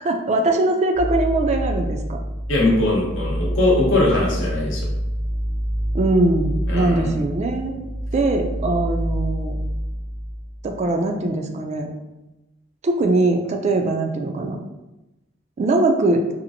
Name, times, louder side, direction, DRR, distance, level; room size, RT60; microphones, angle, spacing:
voice 1, 0.0-2.0 5.9-9.5 10.6-11.9 12.8-14.6 15.6-16.2, right 2 dB, 35° right, 4 dB, 0.3 m, -21 dB
sound 1, 0.9-10.9, equal, 15° left, 0.6 m, -27 dB
voice 2, 2.5-4.9 6.7-7.1, left 2 dB, 85° left, -2 dB, 0.8 m, -20 dB
2.8 x 2.5 x 2.6 m, 0.99 s
head